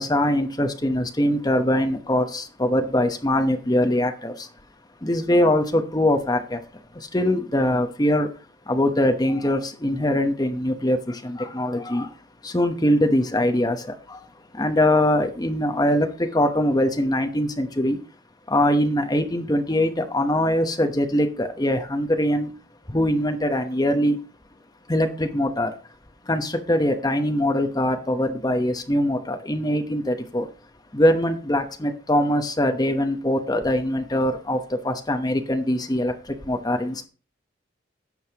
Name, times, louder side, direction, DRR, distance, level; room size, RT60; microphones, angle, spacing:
voice 1, 0.0-4.5 5.0-6.6 6.9-8.3 8.7-12.1 12.4-14.2 14.5-18.0 18.5-22.5 22.9-24.2 24.9-25.7 26.2-30.5 30.9-37.0, left 1 dB, 20° left, 5 dB, 0.9 m, -22 dB
15.5 x 5.5 x 2.9 m, 0.36 s
head